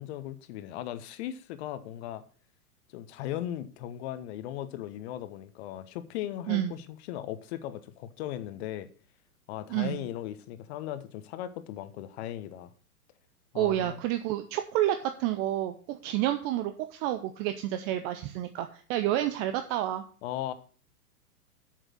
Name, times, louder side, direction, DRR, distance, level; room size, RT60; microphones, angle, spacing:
voice 1, 0.0-2.2 2.9-8.9 9.5-12.7 13.5-14.0 20.2-20.5, left 12 dB, 45° left, 1.2 m, -37 dB
voice 2, 9.7-10.0 13.5-20.0, right 13 dB, 25° right, 0.5 m, -29 dB
8.0 x 6.6 x 6.2 m
hypercardioid pair, 110°, 46 cm